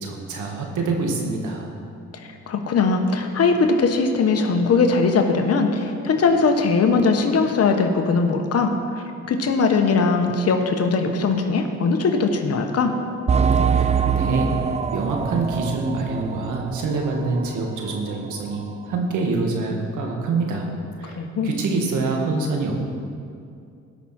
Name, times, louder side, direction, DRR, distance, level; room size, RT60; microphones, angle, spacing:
voice 1, 0.0-1.7 13.7-14.5 14.9-20.7 21.0-22.7, right 3 dB, 80° right, 1 dB, 1.8 m, -26 dB
voice 2, 2.1-12.9 21.1-21.5, left 4 dB, 55° left, 4 dB, 1.3 m, -20 dB
sound 1, 13.3-17.6 17.9-18.0 18.5-18.6, right 6 dB, 20° right, 0.4 m, -23 dB
17.5 x 6.0 x 4.4 m, 2.4 s
cardioid pair, 90°, 30 cm